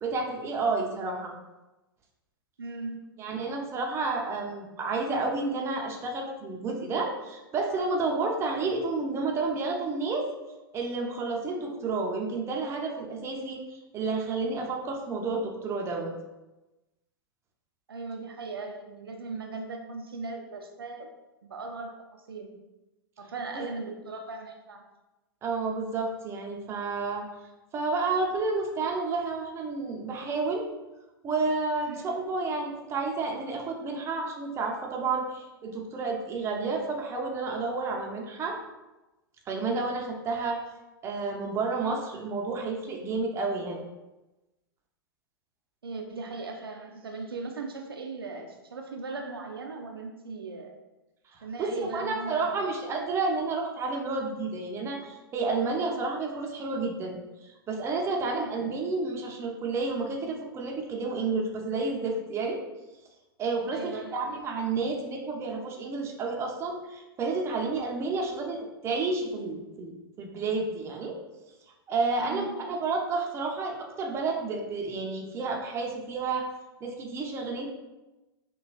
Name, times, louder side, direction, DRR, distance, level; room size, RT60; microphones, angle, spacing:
voice 1, 0.0-1.3 3.2-10.3 10.7-16.1 23.5-23.6 25.4-27.2 27.7-30.7 31.2-38.5 39.5-40.6 41.0-43.8 51.3-57.1 57.4-62.6 63.4-71.2 71.9-76.5 76.8-77.7, right 3 dB, 20° right, 1 dB, 0.6 m, -30 dB
voice 2, 2.6-3.2 17.9-21.1 21.4-22.6 23.2-24.8 31.9-32.1 45.8-50.7 51.4-52.7 58.4-58.8 63.7-64.4 72.2-72.6 77.4-77.5, right 3 dB, 75° right, 3 dB, 0.5 m, -38 dB
5.8 x 2.3 x 2.4 m, 1.1 s
figure-of-eight pair, 100°, 12 cm